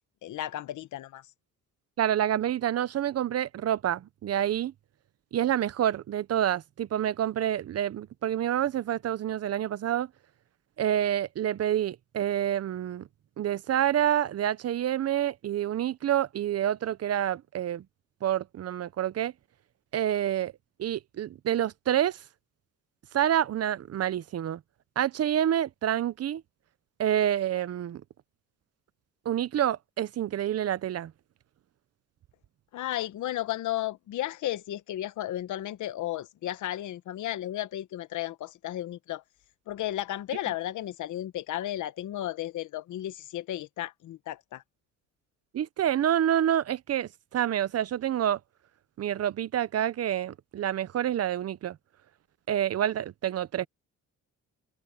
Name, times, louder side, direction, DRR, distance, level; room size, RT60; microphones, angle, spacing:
voice 1, 0.2-1.2 32.7-39.2 39.7-44.6, left 13 dB, 75° left, 1.2 m, -34 dB
voice 2, 2.0-4.7 5.3-10.1 10.8-13.1 13.4-17.8 18.2-19.3 19.9-20.5 20.8-22.2 23.1-24.6 25.0-26.4 27.0-28.0 29.2-31.1 45.5-48.4 49.0-51.8 52.5-53.7, right 11 dB, 55° right, 0.8 m, -28 dB
cardioid pair, 90°, 30 cm